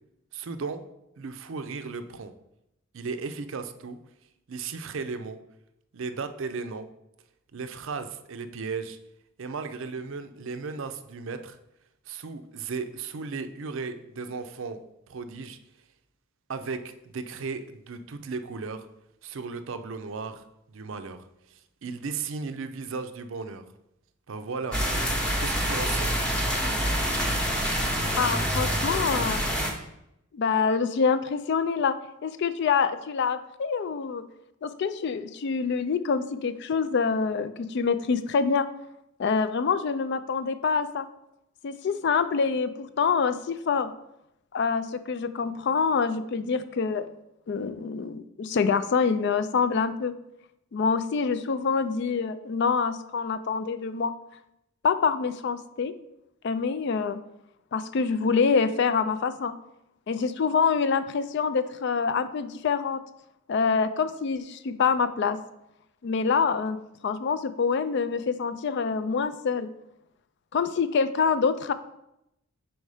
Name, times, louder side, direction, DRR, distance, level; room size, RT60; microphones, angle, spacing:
voice 1, 0.3-0.8 1.2-2.3 2.9-4.0 4.5-5.4 5.9-6.9 7.5-9.0 9.4-11.6 12.1-14.8 15.1-15.6 16.5-18.9 19.2-23.6 24.3-24.8 25.4-26.1, right 4 dB, 60° right, 9 dB, 0.5 m, -35 dB
sound 1, 24.7-29.7, equal, 5° left, 0.9 m, -26 dB
voice 2, 28.1-29.4 30.3-32.0 32.2-34.2 34.6-38.7 39.2-41.1 41.6-43.9 44.5-47.1 47.5-50.1 50.7-54.1 54.8-55.9 56.4-57.2 57.7-59.5 60.1-63.0 63.5-65.4 66.0-66.8 67.0-69.7 70.5-71.7, left 5 dB, 50° left, 12 dB, 0.3 m, -26 dB
5.3 x 4.5 x 4.8 m, 0.84 s
head